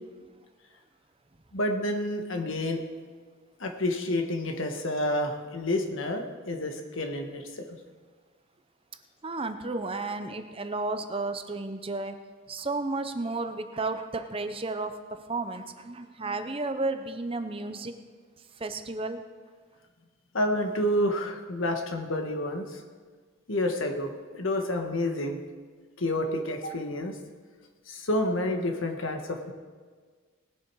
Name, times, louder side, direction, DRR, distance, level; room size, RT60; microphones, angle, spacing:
voice 1, 1.5-2.8 3.6-7.6 20.3-22.8 23.5-25.4 26.0-27.2 27.9-29.5, left 1 dB, 75° left, 4 dB, 1.5 m, -29 dB
voice 2, 9.2-12.2 12.5-17.9 18.6-19.2, right 3 dB, 25° right, 8 dB, 0.7 m, -32 dB
19.5 x 7.6 x 4.8 m, 1.5 s
head